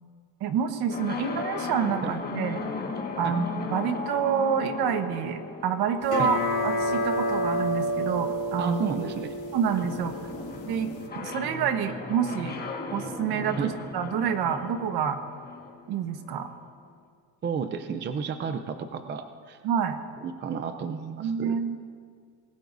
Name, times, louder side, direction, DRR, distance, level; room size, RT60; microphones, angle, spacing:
voice 1, 0.4-2.6 3.2-8.8 9.5-10.1 10.6-12.5 12.9-15.2 15.9-16.5 19.6-20.0 21.2-21.8, right 7 dB, 60° right, 7 dB, 1.3 m, -28 dB
sound 1, 0.9-16.7, left 4 dB, 20° left, 1.6 m, -37 dB
sound 2, 6.0-11.1, equal, 45° left, 2.9 m, -29 dB
voice 2, 8.6-9.3 13.6-13.7 17.4-19.6 20.2-21.6, right 6 dB, 25° right, 8 dB, 0.6 m, -32 dB
25.5 x 20.0 x 2.7 m, 2.1 s
cardioid pair, 150°, 42 cm